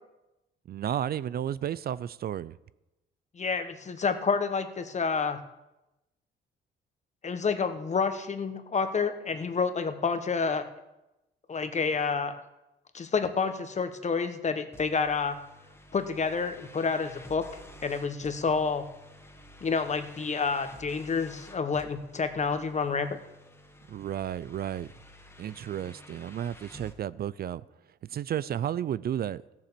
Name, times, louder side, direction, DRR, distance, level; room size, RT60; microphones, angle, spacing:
voice 1, 0.7-2.6 23.9-24.9 25.4-27.6 28.1-29.4, right 10 dB, 50° right, 0.4 m, -32 dB
voice 2, 3.3-5.4 7.2-10.7 11.5-12.4 12.9-15.4 15.9-17.5 17.8-18.8 19.6-23.1, left 5 dB, 35° left, 1.3 m, -29 dB
sound 1, 14.7-27.0, left 1 dB, 10° left, 1.7 m, -51 dB
14.5 x 7.3 x 6.9 m
cardioid pair, 90°, 20 cm